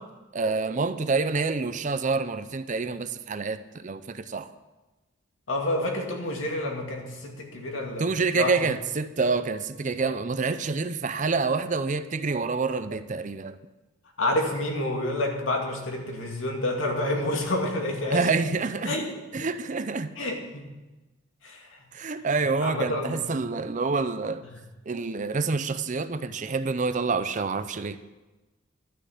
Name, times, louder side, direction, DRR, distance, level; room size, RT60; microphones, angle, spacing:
voice 1, 0.3-4.5 8.0-13.6 18.1-19.0 19.3-20.1 21.9-24.5 24.9-28.0, right 4 dB, 40° right, 12 dB, 0.6 m, -27 dB
voice 2, 5.5-8.7 14.2-18.2 18.8-19.1 20.2-20.7 21.4-21.8 22.6-23.2, left 1 dB, 80° left, 1 dB, 2.3 m, -29 dB
12.0 x 6.5 x 7.8 m, 1.1 s
head